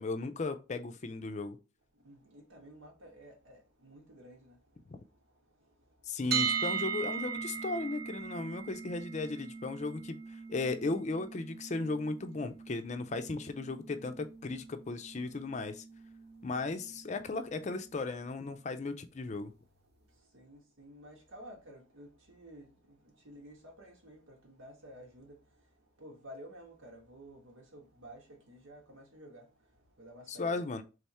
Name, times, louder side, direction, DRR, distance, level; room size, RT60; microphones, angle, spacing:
voice 1, 0.0-1.6 6.1-10.2 10.5-15.8 16.4-19.5 30.3-30.8, left 3 dB, 35° left, 0.4 m, -36 dB
voice 2, 1.9-6.2 16.9-17.0 20.1-29.7 30.0-30.6, equal, 85° right, 1.5 m, -53 dB
sound 1, 6.3-18.2, right 6 dB, 55° right, 0.8 m, -40 dB
3.5 x 3.5 x 4.2 m
head